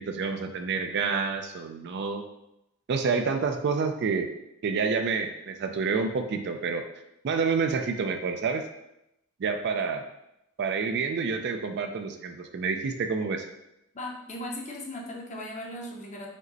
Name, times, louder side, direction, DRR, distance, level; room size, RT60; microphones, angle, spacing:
voice 1, 0.0-2.2 2.9-4.3 4.6-6.8 7.2-8.6 9.4-10.0 10.6-13.4, right 5 dB, 50° right, 5 dB, 0.4 m, -28 dB
voice 2, 13.9-16.3, left 1 dB, 30° left, 0 dB, 0.7 m, -37 dB
5.1 x 2.1 x 3.9 m, 0.85 s
head